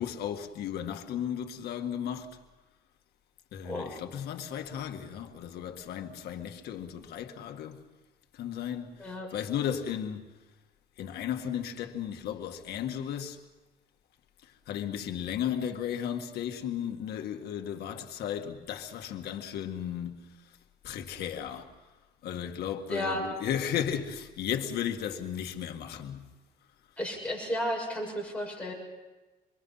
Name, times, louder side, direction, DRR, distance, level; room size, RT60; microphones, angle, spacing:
voice 1, 0.0-2.4 3.5-7.8 8.3-10.3 11.0-13.4 14.7-20.3 20.8-21.7 22.2-26.3, left 9 dB, 70° left, 1.9 m, -35 dB
voice 2, 9.0-9.3 22.9-23.3 27.0-28.7, equal, 5° left, 6.5 m, -33 dB
26.5 x 22.0 x 5.7 m
cardioid pair, 110°, 17 cm